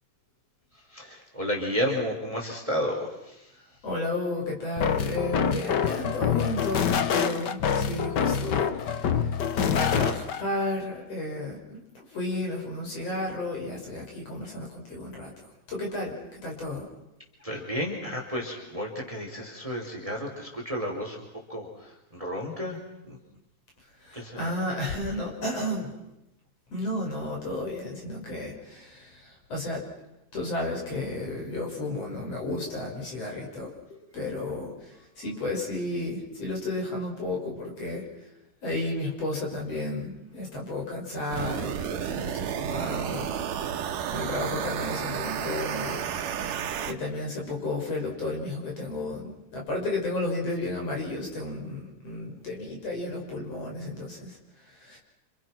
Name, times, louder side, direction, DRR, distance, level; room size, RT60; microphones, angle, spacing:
voice 1, 0.7-3.6 17.4-22.8 23.0-23.2 24.1-24.5, equal, 10° right, 1 dB, 4.4 m, -32 dB
voice 2, 3.8-16.9 24.0-26.0 26.7-29.9 30.3-38.3 38.6-43.3 44.1-46.3 46.8-55.0, left 2 dB, 50° left, -1 dB, 7.0 m, -33 dB
sound 1, 4.8-10.4, left 7 dB, 80° left, 0.9 m, -26 dB
sound 2, 41.3-46.9, right 9 dB, 80° right, 2.9 m, -31 dB
29.0 x 28.5 x 6.1 m, 0.90 s
omnidirectional pair, 3.7 m